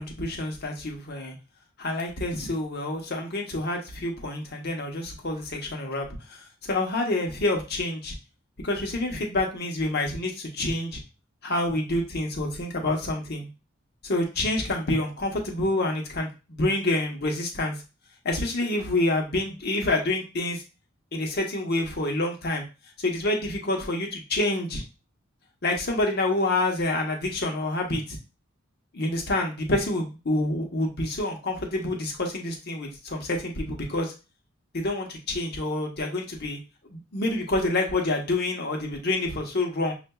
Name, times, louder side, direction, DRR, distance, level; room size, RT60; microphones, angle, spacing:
voice 1, 0.0-1.3 1.8-8.1 8.6-11.0 11.4-13.5 14.0-17.8 18.2-20.6 21.1-22.7 23.0-24.8 25.6-28.2 28.9-34.1 34.7-36.6 36.9-39.9, left 2 dB, 55° left, 1 dB, 1.0 m, -27 dB
6.5 x 2.5 x 2.3 m, 0.30 s
head